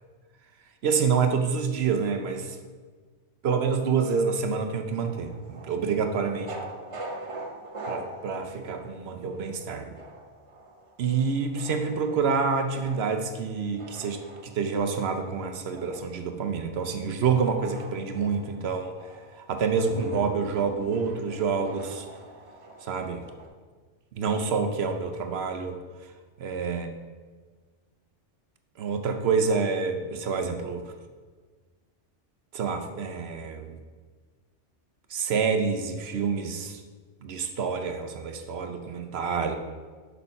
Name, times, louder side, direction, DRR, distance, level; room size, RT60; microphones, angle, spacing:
voice 1, 0.8-2.6 3.4-6.6 7.9-10.0 11.0-18.9 19.4-22.1 22.8-23.2 24.1-25.8 26.4-26.9 28.8-30.8 32.5-33.8 35.1-36.8 37.2-39.6, right 5 dB, 65° right, 6 dB, 0.9 m, -27 dB
sound 1, 5.0-23.5, right 2 dB, 30° right, 0.7 m, -45 dB
sound 2, 19.8-23.2, left 1 dB, 70° left, 1.6 m, -44 dB
6.5 x 5.6 x 5.3 m, 1.5 s
omnidirectional pair, 1.2 m